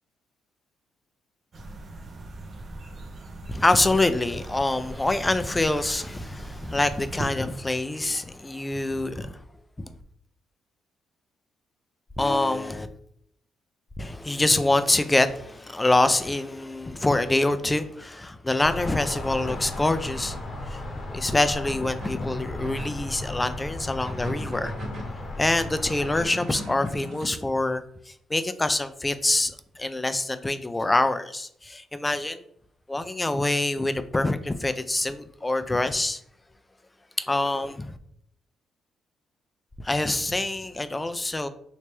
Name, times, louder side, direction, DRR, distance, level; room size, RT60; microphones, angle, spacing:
sound 1, 1.5-7.2, right 2 dB, 45° right, 0.6 m, -40 dB
voice 1, 3.5-9.4 9.8-9.9 12.2-12.9 14.0-20.4 20.7-24.7 25.4-32.4 32.9-36.2 37.2-38.0 39.8-41.5, left 2 dB, 15° left, 0.3 m, -25 dB
sound 2, 18.6-26.2, left 1 dB, 40° left, 0.9 m, -35 dB
sound 3, 19.4-20.6 21.6-23.1 23.8-25.2 25.9-27.4, left 1 dB, 70° right, 1.4 m, -40 dB
3.3 x 2.9 x 3.1 m
cardioid pair, 90°, 0 cm